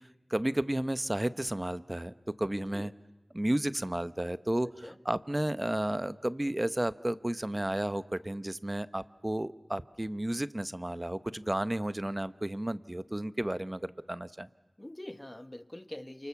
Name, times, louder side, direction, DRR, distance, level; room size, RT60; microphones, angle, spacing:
voice 1, 0.3-2.9 3.3-4.7 5.0-14.5, right 1 dB, 25° right, 14 dB, 0.9 m, -32 dB
voice 2, 2.5-2.9 4.8-5.0 14.8-16.3, left 1 dB, 20° left, 12 dB, 1.2 m, -44 dB
29.0 x 27.5 x 7.2 m, 1.1 s
wide cardioid pair, 60°, 0 cm